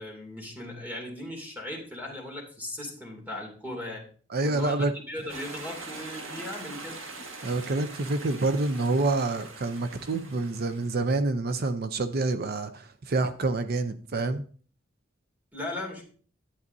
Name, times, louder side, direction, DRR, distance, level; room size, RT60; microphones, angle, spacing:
voice 1, 0.0-4.1 4.4-7.0 15.5-16.0, left 1 dB, 10° right, 2.5 m, -38 dB
voice 2, 4.3-4.9 7.4-14.4, right 3 dB, 50° right, 0.6 m, -27 dB
sound 1, 5.3-11.1, right 3 dB, 85° right, 1.7 m, -43 dB
11.0 x 8.5 x 2.7 m
head